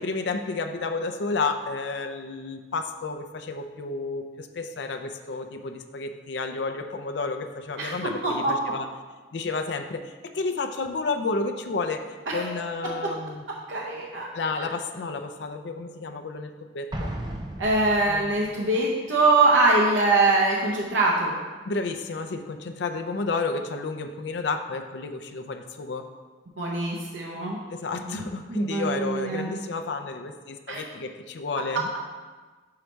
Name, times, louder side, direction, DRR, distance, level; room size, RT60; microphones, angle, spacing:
voice 1, 0.0-8.9 9.3-13.4 14.3-17.1 18.1-18.4 21.6-26.1 27.7-32.0, left 3 dB, 70° left, 6 dB, 0.5 m, -31 dB
voice 2, 8.2-8.5 12.3-12.5 13.7-14.3 17.6-21.4 26.6-27.6 28.1-29.5 30.7-30.8, right 2 dB, 85° right, -3 dB, 0.7 m, -23 dB
Explosion, 16.9-18.6, right 1 dB, 20° right, 0.5 m, -35 dB
5.2 x 4.7 x 4.4 m, 1.4 s
head